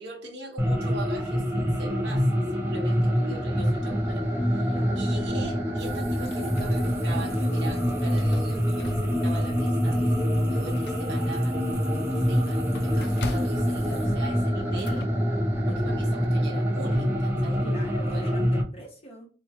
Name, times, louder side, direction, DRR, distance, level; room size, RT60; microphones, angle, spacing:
voice 1, 0.0-11.6 12.3-15.1 15.7-17.6 18.1-18.3, right 2 dB, 65° right, 1.0 m, -40 dB
sound 1, 0.6-18.6, equal, 10° right, 0.5 m, -25 dB
sound 2, 5.8-14.1, right 4 dB, 35° right, 0.9 m, -49 dB
sound 3, 6.3-7.2 7.6-7.7 8.2-9.4 9.9-10.0 10.4-15.1, left 5 dB, 60° left, 0.4 m, -44 dB
voice 2, 13.8-14.2 17.6-19.3, equal, 35° left, 1.1 m, -42 dB
4.2 x 2.2 x 2.8 m
head